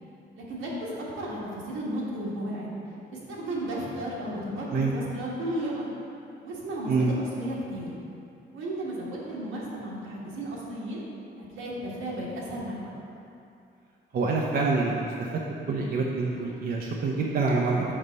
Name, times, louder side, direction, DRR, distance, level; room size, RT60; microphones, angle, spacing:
voice 1, 0.4-2.7 3.3-5.9 6.4-7.9 8.5-11.0 11.4-12.9, right 1 dB, 85° right, -5 dB, 1.4 m, -34 dB
voice 2, 14.1-15.0 15.7-17.8, right 4 dB, 50° right, -2 dB, 0.6 m, -26 dB
5.4 x 5.0 x 4.0 m, 2.6 s
cardioid pair, 90°, 20 cm